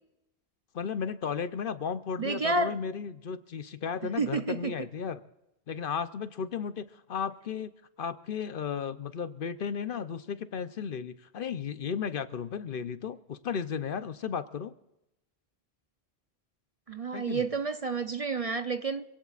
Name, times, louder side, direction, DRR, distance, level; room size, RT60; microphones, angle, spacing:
voice 1, 0.7-5.2 5.7-7.7 8.0-14.7 17.1-17.5, left 6 dB, 60° left, 13 dB, 0.9 m, -34 dB
voice 2, 2.2-2.8 4.2-4.7 16.9-19.0, right 3 dB, 40° right, 9 dB, 0.7 m, -30 dB
26.5 x 17.5 x 2.5 m, 0.90 s
omnidirectional pair, 1.1 m